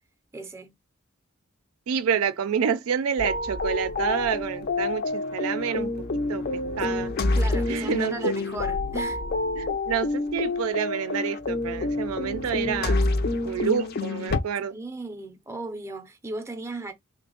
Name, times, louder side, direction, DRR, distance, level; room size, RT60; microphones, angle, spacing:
voice 1, 0.3-0.7 7.3-9.2 14.6-16.9, right 2 dB, 15° right, 0.5 m, -36 dB
voice 2, 1.9-5.9 6.3-6.4 6.8-7.1 7.7-8.3 9.6-13.0 13.4-14.8, right 7 dB, 80° right, 0.4 m, -28 dB
sound 1, 3.2-14.4, left 2 dB, 45° left, 0.5 m, -28 dB
sound 2, 3.8-9.7, left 8 dB, 90° left, 0.8 m, -45 dB
3.3 x 2.0 x 3.8 m
head